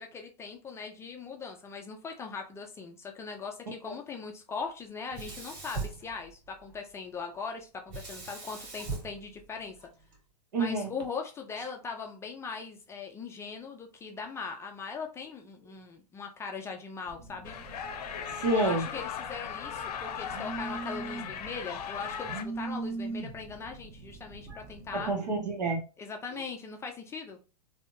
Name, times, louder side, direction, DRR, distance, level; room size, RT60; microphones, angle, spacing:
voice 1, 0.0-9.9 10.6-17.6 18.5-25.1 26.0-27.4, left 5 dB, 15° left, 3 dB, 0.4 m, -40 dB
Sink (filling or washing), 5.1-6.8 7.9-10.2, right 4 dB, 45° right, 1.9 m, -40 dB
voice 2, 10.5-10.9 18.1-18.8 24.9-25.8, right 2 dB, 80° right, 1 dB, 1.4 m, -29 dB
Telephone, 17.1-25.1, right 3 dB, 30° right, 0.8 m, -42 dB
sound 1, 17.4-22.4, left 8 dB, 70° left, 0.6 m, -38 dB
3.6 x 2.7 x 2.6 m, 0.32 s
hypercardioid pair, 135°, 21 cm